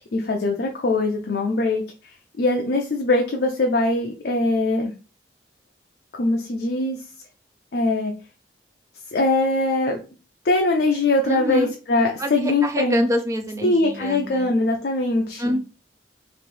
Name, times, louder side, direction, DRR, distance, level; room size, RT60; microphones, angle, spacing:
voice 1, 0.0-4.9 6.2-7.0 7.7-8.1 9.1-10.0 10.4-13.0 13.6-15.6, left 2 dB, 55° left, 1 dB, 0.5 m, -22 dB
voice 2, 11.3-11.7 12.2-14.5 15.4-15.6, equal, 15° right, 6 dB, 0.4 m, -25 dB
3.0 x 2.6 x 3.1 m, 0.34 s
head